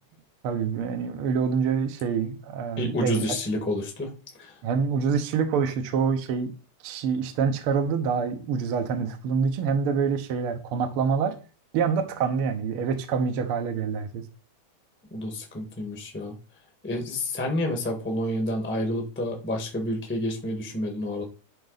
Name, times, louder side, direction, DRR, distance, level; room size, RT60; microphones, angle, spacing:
voice 1, 0.4-3.4 4.6-6.5 6.8-11.4 11.7-14.3, right 6 dB, 65° right, 1.5 m, -26 dB
voice 2, 2.8-4.1 4.4-4.5 15.1-16.3 16.8-21.2, left 1 dB, 5° left, 0.9 m, -29 dB
10.5 x 3.8 x 4.0 m
omnidirectional pair, 3.4 m